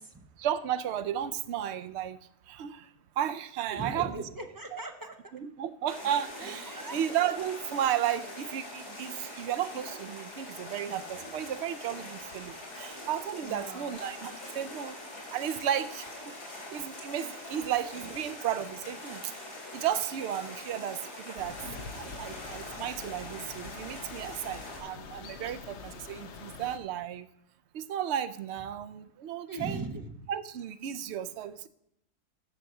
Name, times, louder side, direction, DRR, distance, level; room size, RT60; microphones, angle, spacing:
voice 1, 0.4-2.2 2.5-2.9 3.2-4.3 5.3-15.0 15.3-16.3 16.7-19.3 19.7-21.6 21.9-27.3 27.7-29.8 30.3-31.7, right 10 dB, 65° right, 12 dB, 0.6 m, -33 dB
voice 2, 3.7-5.2 6.7-7.0 13.4-14.0 29.5-30.1, right 2 dB, 25° right, 4 dB, 0.5 m, -39 dB
sound 1, 5.9-24.8, left 1 dB, 85° left, 4.3 m, -43 dB
sound 2, 21.4-26.8, left 5 dB, 55° left, 0.9 m, -45 dB
8.3 x 6.5 x 7.0 m, 0.77 s
omnidirectional pair, 1.6 m